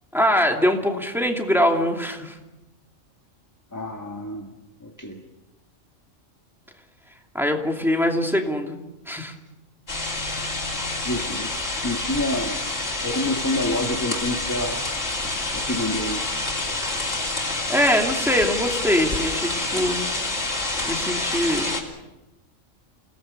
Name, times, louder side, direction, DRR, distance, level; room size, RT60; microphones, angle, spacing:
voice 1, 0.1-2.4 7.3-8.8 9.1-9.3 17.7-20.1 20.8-21.7, equal, ahead, 2 dB, 2.6 m, -22 dB
voice 2, 3.7-4.5 4.8-5.2 11.0-12.6 13.0-14.9 15.5-16.2, left 1 dB, 15° left, 3 dB, 1.6 m, -28 dB
sound 1, 9.9-21.8, left 2 dB, 70° left, 3.9 m, -28 dB
29.0 x 18.5 x 6.8 m, 1.0 s
omnidirectional pair, 1.4 m